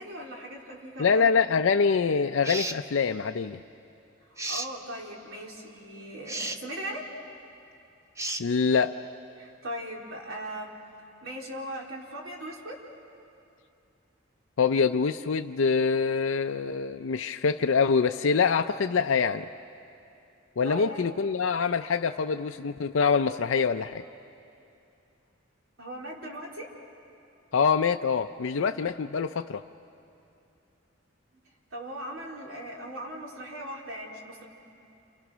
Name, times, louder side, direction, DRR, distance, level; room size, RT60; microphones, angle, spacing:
voice 1, 0.0-1.3 4.5-7.1 9.4-10.7 11.2-12.8 20.6-21.1 25.8-26.7 31.7-34.5, right 1 dB, 85° right, -1 dB, 3.9 m, -39 dB
voice 2, 1.0-3.6 8.4-8.9 14.6-19.5 20.6-24.0 27.5-29.6, left 5 dB, 75° left, 7 dB, 0.5 m, -25 dB
sound 1, 2.4-2.8 4.4-4.7 6.3-6.6 8.2-8.5, right 2 dB, 15° right, 0.8 m, -33 dB
29.5 x 28.5 x 6.2 m, 2.6 s
head